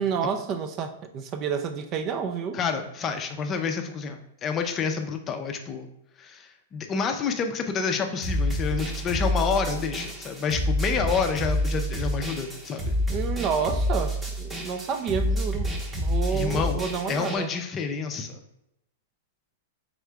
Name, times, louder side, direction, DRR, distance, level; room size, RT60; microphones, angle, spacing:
voice 1, 0.0-2.6 13.1-17.5, right 6 dB, 35° right, 7 dB, 0.4 m, -29 dB
voice 2, 2.5-5.9 6.2-12.9 16.3-16.8 17.1-18.4, left 5 dB, 25° left, 6 dB, 0.5 m, -28 dB
sound 1, 8.2-17.4, equal, 15° right, 0.8 m, -28 dB
3.6 x 3.5 x 3.4 m, 0.84 s
hypercardioid pair, 135°, 0 cm